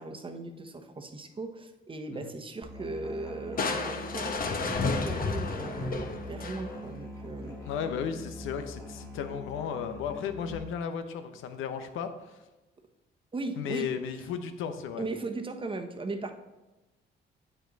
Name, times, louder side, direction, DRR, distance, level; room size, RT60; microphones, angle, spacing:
voice 1, 0.0-7.6 13.3-13.9 15.0-16.3, right 3 dB, 25° right, 5 dB, 1.0 m, -38 dB
Musical instrument, 2.6-10.6, left 1 dB, 15° left, 2.0 m, -43 dB
Crushing, 3.6-7.0, left 4 dB, 45° left, 1.1 m, -31 dB
voice 2, 7.6-12.4 13.6-15.1, left 7 dB, 90° left, 8 dB, 0.9 m, -35 dB
8.3 x 7.8 x 4.1 m, 1.1 s
cardioid pair, 90°, 20 cm